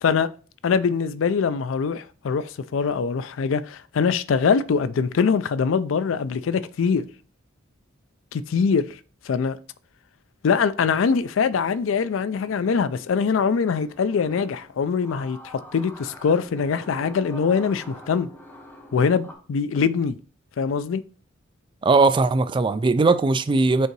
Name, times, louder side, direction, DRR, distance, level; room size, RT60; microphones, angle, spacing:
voice 1, 0.6-7.1 8.3-8.9 9.3-9.6 10.4-18.3 18.9-20.2 20.6-21.0, left 5 dB, 70° left, 0.4 m, -23 dB
sound 1, 12.3-19.3, left 1 dB, 10° left, 1.0 m, -46 dB
voice 2, 21.8-23.9, right 3 dB, 25° right, 0.3 m, -19 dB
5.4 x 3.8 x 4.5 m
head